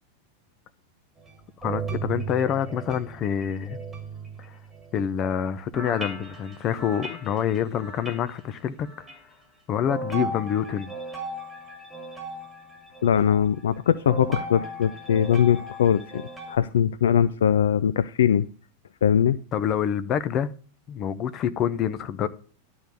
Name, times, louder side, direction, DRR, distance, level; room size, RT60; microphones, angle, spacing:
sound 1, 1.2-5.1 5.7-8.3 8.8-9.2 9.9-16.6, right 3 dB, 5° right, 2.6 m, -37 dB
voice 1, 1.6-3.8 4.4-4.6 4.9-8.9 9.7-10.9 19.5-20.5 20.9-22.3, left 9 dB, 35° left, 0.7 m, -27 dB
voice 2, 13.0-16.2 16.5-18.5 19.0-19.4, left 8 dB, 60° left, 0.3 m, -21 dB
11.5 x 4.0 x 7.6 m
figure-of-eight pair, 90°, 0 cm